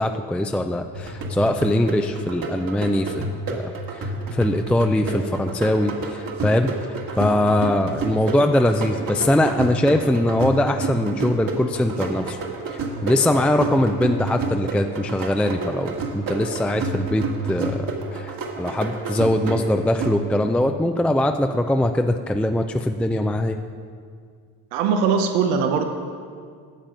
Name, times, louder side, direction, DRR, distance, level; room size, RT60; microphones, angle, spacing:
voice 1, 0.0-6.7 7.2-12.4 13.0-23.6, left 1 dB, 5° left, 6 dB, 0.4 m, -22 dB
sound 1, 0.9-20.6, right 3 dB, 55° right, 1.8 m, -30 dB
voice 2, 24.7-25.9, right 6 dB, 85° right, 6 dB, 0.9 m, -20 dB
11.5 x 7.5 x 5.3 m, 2.1 s
supercardioid pair, 80°, 41 cm